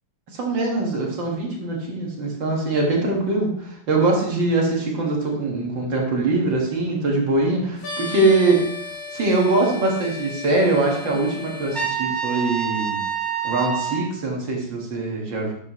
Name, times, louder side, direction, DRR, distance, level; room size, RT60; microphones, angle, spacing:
voice 1, 0.3-8.7 9.1-13.0 13.4-15.5, right 2 dB, 65° right, -1 dB, 2.5 m, -22 dB
sound 1, 7.8-11.9, left 3 dB, 75° left, 2.3 m, -35 dB
Trumpet, 11.7-14.1, right 7 dB, 30° right, 0.3 m, -26 dB
9.6 x 6.9 x 3.1 m, 0.70 s
omnidirectional pair, 2.2 m